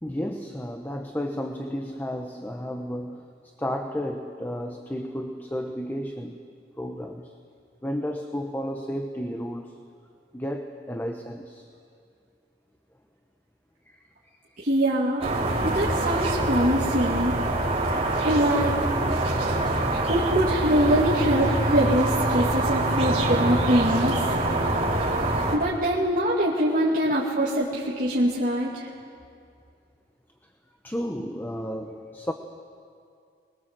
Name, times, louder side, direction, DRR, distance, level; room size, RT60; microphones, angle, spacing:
voice 1, 0.0-3.3 3.6-6.4 6.8-7.3 7.8-9.8 10.3-11.7 13.9-14.4 27.0-27.2 30.8-32.3, equal, 10° left, 5 dB, 0.9 m, -33 dB
voice 2, 14.6-15.2 15.6-17.4 18.2-18.8 19.1-19.3 19.9-24.2 25.5-28.9, equal, 50° right, -6 dB, 2.4 m, -24 dB
sound 1, 15.2-25.6, right 2 dB, 35° right, 3.4 m, -25 dB
25.0 x 21.0 x 7.5 m, 2.4 s
head